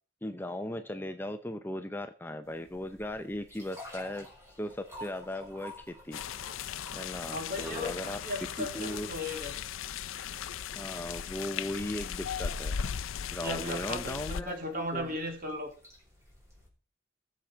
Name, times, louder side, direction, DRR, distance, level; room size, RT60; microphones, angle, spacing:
voice 1, 0.2-4.3 4.6-6.2 6.9-8.2 8.6-9.1 10.8-12.8 13.3-15.1, left 1 dB, 10° left, 8 dB, 0.5 m, -37 dB
sound 1, 2.5-16.7, left 1 dB, 15° right, 4.2 m, -51 dB
sound 2, 6.1-14.4, left 8 dB, 75° left, 0.5 m, -37 dB
voice 2, 7.3-9.6 13.4-15.7, left 1 dB, 45° right, 3 dB, 3.0 m, -36 dB
19.5 x 7.2 x 4.5 m, 0.42 s
head